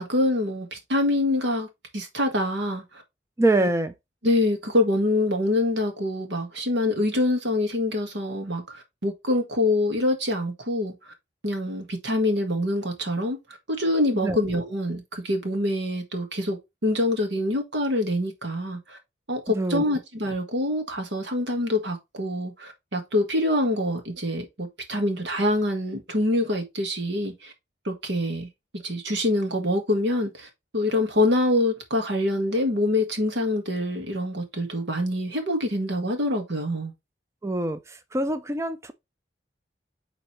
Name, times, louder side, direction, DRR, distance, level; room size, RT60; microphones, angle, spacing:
voice 1, 0.0-1.7 1.9-3.0 3.6-3.7 4.2-10.9 11.4-13.4 13.7-19.0 19.3-27.5 27.9-28.5 28.7-36.9, left 1 dB, 80° right, 1.8 m, -25 dB
voice 2, 3.4-3.9 14.2-14.4 19.6-19.8 37.4-37.8 38.1-38.9, right 2 dB, 15° right, 0.4 m, -24 dB
7.4 x 3.9 x 3.2 m
head